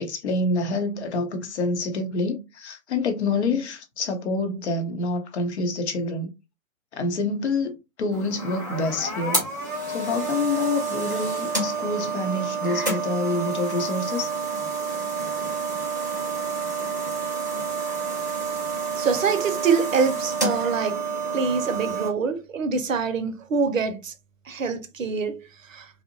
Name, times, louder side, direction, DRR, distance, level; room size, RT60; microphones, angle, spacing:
voice 1, 0.0-6.3 6.9-9.4 9.9-14.3, left 3 dB, 55° left, 0.7 m, -27 dB
sound 1, 8.1-22.1, right 4 dB, 15° right, 0.3 m, -29 dB
voice 2, 19.0-21.0 21.3-24.1 24.5-25.9, right 5 dB, 70° right, 0.6 m, -25 dB
2.7 x 2.0 x 2.8 m
figure-of-eight pair, 120°, 41 cm